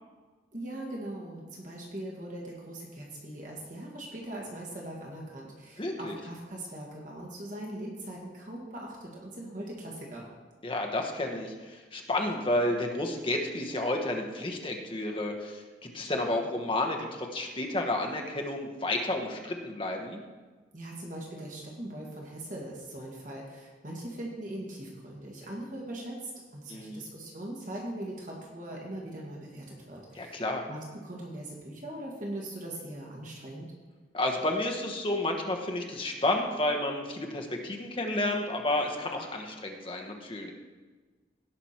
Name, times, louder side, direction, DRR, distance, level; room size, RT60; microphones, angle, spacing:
voice 1, 0.5-10.3 20.7-30.4 30.7-33.7, right 1 dB, 45° right, -2 dB, 1.8 m, -40 dB
voice 2, 5.8-6.1 10.6-20.2 26.7-27.1 30.1-30.6 34.1-40.5, left 1 dB, 30° left, 2 dB, 1.1 m, -31 dB
17.0 x 6.0 x 4.4 m, 1.3 s
head